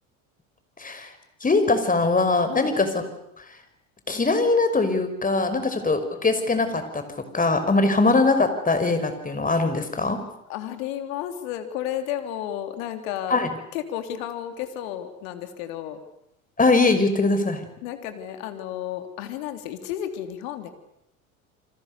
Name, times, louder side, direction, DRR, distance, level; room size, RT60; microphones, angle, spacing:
voice 1, 0.8-1.1 1.4-3.0 3.4-3.5 4.1-7.0 7.3-10.2 13.3-13.5 16.6-17.6, left 3 dB, 20° left, 8 dB, 5.7 m, -21 dB
voice 2, 10.5-13.4 13.7-16.0 17.8-20.7, left 11 dB, 70° left, 8 dB, 3.5 m, -32 dB
29.5 x 25.5 x 6.9 m, 0.80 s
hypercardioid pair, 80°, 42 cm